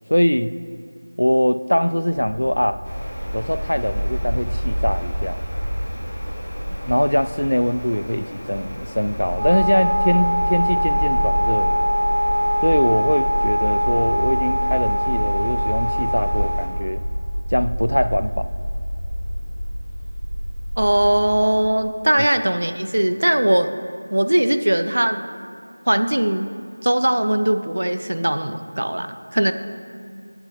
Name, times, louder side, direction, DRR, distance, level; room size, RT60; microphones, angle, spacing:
voice 1, 0.1-0.5 1.2-2.8 3.3-5.4 6.9-11.8 12.6-17.0 17.5-18.5, equal, 80° left, 13 dB, 0.4 m, -22 dB
Bark, 2.1-21.2, equal, 10° right, 1.9 m, -28 dB
sound 1, 2.8-16.7, equal, 40° left, 1.6 m, -38 dB
Wind instrument woodwind instrument, 9.3-16.8, equal, 85° right, 1.0 m, -22 dB
voice 2, 20.8-23.8 24.1-25.2 25.9-26.5 26.8-29.5, right 1 dB, 60° right, 10 dB, 0.5 m, -20 dB
8.6 x 7.0 x 4.2 m, 2.5 s
figure-of-eight pair, 175°, 0 cm